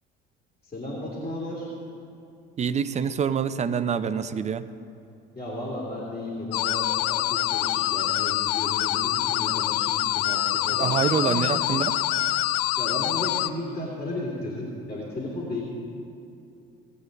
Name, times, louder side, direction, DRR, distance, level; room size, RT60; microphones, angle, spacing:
voice 1, 0.7-1.7 5.3-11.6 12.8-15.6, left 1 dB, 20° left, -4 dB, 2.6 m, -34 dB
voice 2, 2.6-4.7 10.7-11.9, right 7 dB, 25° right, 13 dB, 0.5 m, -26 dB
sound 1, 6.5-13.5, left 15 dB, 60° left, 0.4 m, -25 dB
18.0 x 8.4 x 4.0 m, 2.6 s
figure-of-eight pair, 60°, 30 cm